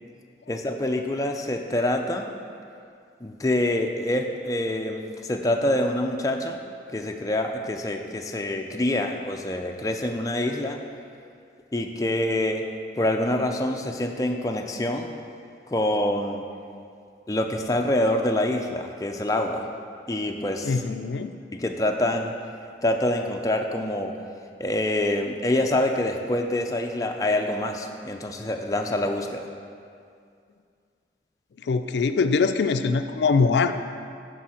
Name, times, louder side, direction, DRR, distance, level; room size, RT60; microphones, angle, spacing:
voice 1, 0.5-2.3 3.2-6.6 6.9-10.8 11.7-12.6 13.0-15.1 15.7-16.4 17.3-19.7 20.1-20.8 21.5-22.3 22.8-24.1 24.6-29.5, left 1 dB, 20° left, 3 dB, 0.4 m, -26 dB
voice 2, 20.6-21.3 31.6-33.7, left 4 dB, 80° left, 9 dB, 0.4 m, -22 dB
12.5 x 4.7 x 4.3 m, 2.3 s
head